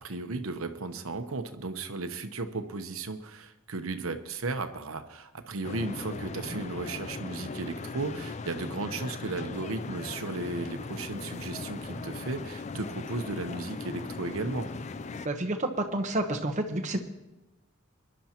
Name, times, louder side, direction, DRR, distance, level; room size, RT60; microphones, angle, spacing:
voice 1, 0.0-14.7, right 3 dB, 75° right, 8 dB, 0.9 m, -35 dB
sound 1, 5.6-15.3, left 3 dB, 30° left, 0.4 m, -39 dB
voice 2, 15.2-17.0, right 1 dB, 35° right, 3 dB, 1.1 m, -29 dB
22.0 x 11.0 x 3.0 m, 1.0 s
head